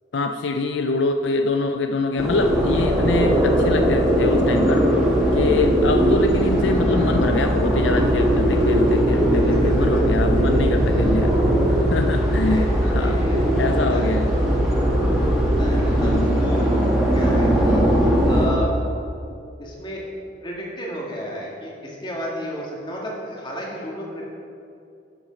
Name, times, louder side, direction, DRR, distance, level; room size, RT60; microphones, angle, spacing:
voice 1, 0.1-4.8 5.3-11.3 11.7-13.2 13.6-14.3 16.0-16.3, left 3 dB, 75° left, 6 dB, 0.5 m, -25 dB
sound 1, 2.2-18.5, equal, 5° right, 2.0 m, -19 dB
voice 2, 9.3-10.5 10.9-11.2 12.3-14.1 15.4-16.9 17.1-17.8 18.2-18.7 19.6-20.0 20.4-24.2, equal, 25° left, -3 dB, 1.9 m, -33 dB
11.0 x 7.3 x 5.2 m, 2.6 s
head